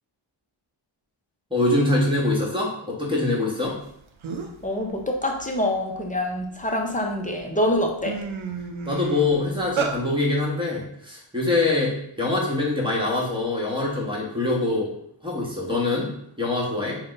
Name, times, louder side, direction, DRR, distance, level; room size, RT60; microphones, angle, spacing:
voice 1, 1.5-3.8 8.8-14.9 15.2-16.1 16.4-17.0, left 2 dB, 10° right, -4 dB, 1.2 m, -24 dB
sound 1, 3.9-4.0 4.2-4.7 5.1-6.7 7.3-7.4 7.7-10.0, right 5 dB, 70° right, 0.6 m, -31 dB
voice 2, 4.6-8.2, left 1 dB, 15° left, 1 dB, 0.6 m, -25 dB
3.7 x 2.2 x 3.9 m, 0.73 s
wide cardioid pair, 55°, 50 cm